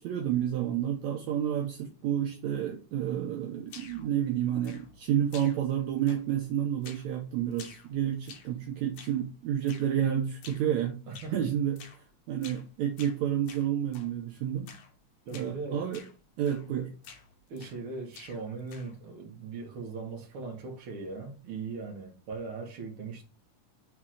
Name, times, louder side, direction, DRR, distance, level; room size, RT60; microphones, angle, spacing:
voice 1, 0.0-11.0 11.3-11.8 12.3-14.7 15.3-16.0 16.4-16.9, right 10 dB, 75° right, 2.0 m, -30 dB
sound 1, 3.7-4.1 4.6-5.0 5.3-5.8 6.1-6.5 6.8-7.1 7.5-8.6 8.9-9.2 9.7-9.9 10.4-10.7 11.1-11.4 11.8-12.0 12.4-12.7 13.0-14.1 14.7-14.9 15.3-15.5 15.9-16.2 16.4-16.7 17.0-17.8 18.1-19.0, left 6 dB, 70° left, 2.3 m, -50 dB
voice 2, 11.1-11.5 15.3-15.9 16.8-16.9 17.5-23.2, right 4 dB, 50° right, 2.1 m, -39 dB
6.1 x 3.6 x 4.9 m
omnidirectional pair, 3.5 m